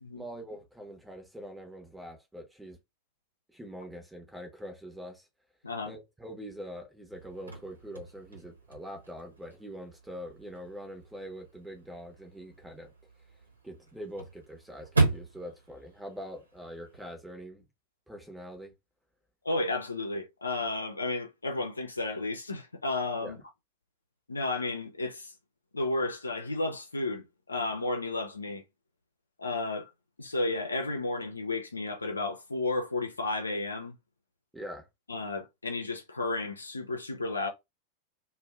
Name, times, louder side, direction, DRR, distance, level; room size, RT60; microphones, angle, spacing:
voice 1, 0.2-2.8 3.5-5.3 5.8-12.9 13.6-17.6 18.1-18.7 23.2-23.4 34.5-34.9, equal, 5° right, 1.0 m, -44 dB
Chirp tweet / Car / Slam, 7.1-17.1, right 3 dB, 80° right, 0.9 m, -36 dB
voice 2, 19.4-23.4 24.3-25.3 25.7-28.6 29.4-29.9 30.2-34.0 35.1-37.5, left 2 dB, 80° left, 0.6 m, -32 dB
2.6 x 2.1 x 3.5 m
figure-of-eight pair, 90°, 0 cm